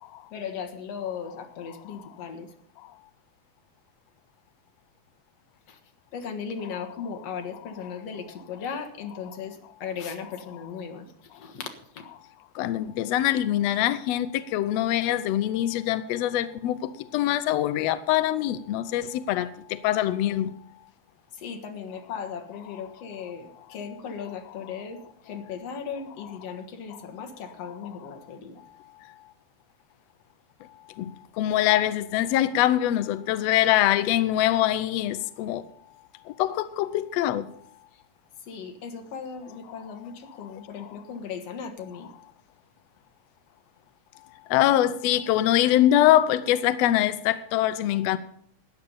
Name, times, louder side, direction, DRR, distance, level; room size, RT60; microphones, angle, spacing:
voice 1, 0.3-2.5 5.7-5.8 6.1-12.0 21.3-28.9 37.9-38.0 38.4-42.1, left 6 dB, 55° left, 2.4 m, -37 dB
voice 2, 12.6-16.8 17.1-20.5 31.0-31.1 31.4-35.6 36.4-37.5 44.5-48.2, left 13 dB, 85° left, 1.4 m, -23 dB
13.5 x 9.4 x 5.5 m
omnidirectional pair, 3.7 m